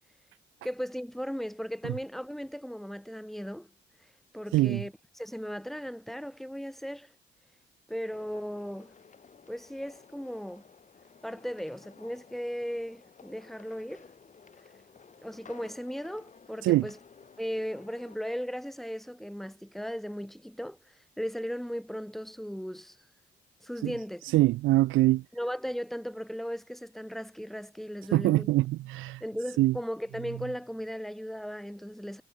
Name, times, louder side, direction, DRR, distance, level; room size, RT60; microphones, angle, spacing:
voice 1, 0.6-3.7 4.3-7.1 7.9-8.9 9.5-10.7 11.2-14.1 15.2-17.0 17.4-23.0 23.6-24.3 25.3-28.5 29.2-32.2, equal, ahead, 2.5 m, -37 dB
voice 2, 4.5-4.8 16.6-16.9 23.8-23.9 24.3-25.2 28.1-29.2 29.6-29.7, right 17 dB, 80° right, 0.5 m, -23 dB
sound 1, 8.1-18.2, left 6 dB, 40° left, 2.9 m, -55 dB
cardioid pair, 90°, 20 cm